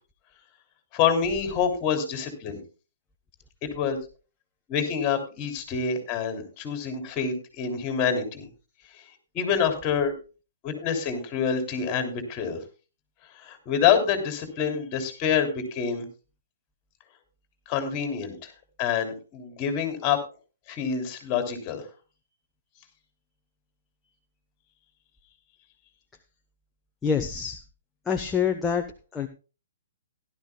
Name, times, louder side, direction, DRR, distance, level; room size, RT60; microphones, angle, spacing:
voice 1, 0.9-2.6 3.6-4.0 4.7-8.5 9.3-10.1 10.6-12.6 13.4-16.1 17.7-18.5 18.8-20.2 20.7-21.8, left 7 dB, 30° left, 5 dB, 3.2 m, -26 dB
voice 2, 27.0-27.6 28.1-28.8 29.1-29.3, left 7 dB, 10° left, 4 dB, 0.9 m, -26 dB
16.5 x 12.0 x 2.2 m, 0.33 s
figure-of-eight pair, 125°, 0 cm